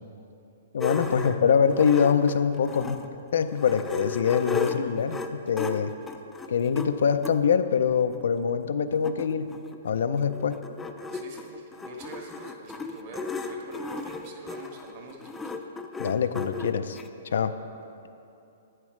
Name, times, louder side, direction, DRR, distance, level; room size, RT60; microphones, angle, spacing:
voice 1, 0.7-3.0 3.3-5.9 6.5-9.5 9.8-10.6 16.0-17.0 17.2-17.6, left 7 dB, 75° left, 10 dB, 0.4 m, -24 dB
sound 1, 0.8-3.1 3.5-7.4 8.1-8.2 8.5-8.6 8.8-17.1, left 4 dB, 10° left, 0.4 m, -35 dB
voice 2, 11.1-15.5, right 3 dB, 45° right, 1 dB, 1.4 m, -45 dB
11.0 x 8.9 x 3.2 m, 2.7 s
hypercardioid pair, 160°, 0 cm